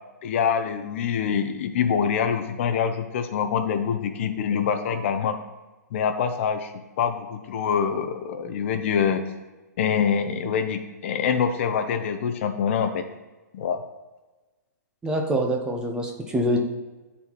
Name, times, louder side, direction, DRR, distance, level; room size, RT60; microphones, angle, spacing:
voice 1, 0.2-5.4 5.9-6.7 7.0-9.2 9.8-13.0 13.5-13.8, left 7 dB, 45° left, 7 dB, 0.5 m, -25 dB
voice 2, 15.0-16.6, equal, 10° right, 2 dB, 0.6 m, -25 dB
11.0 x 4.1 x 2.9 m, 1.2 s
hypercardioid pair, 155°, 10 cm